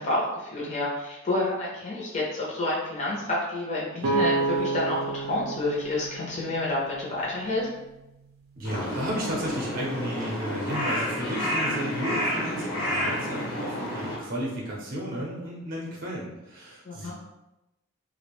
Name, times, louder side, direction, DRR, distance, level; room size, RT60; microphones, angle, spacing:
voice 1, 0.0-7.7 16.9-17.1, left 2 dB, 35° left, -5 dB, 0.5 m, -29 dB
sound 1, 4.0-7.8, right 3 dB, 90° right, 0.5 m, -30 dB
Crow, 8.6-14.2, equal, 85° left, 0.9 m, -30 dB
voice 2, 8.6-17.1, right 1 dB, 45° right, -3 dB, 0.6 m, -33 dB
2.5 x 2.0 x 2.9 m, 0.95 s
head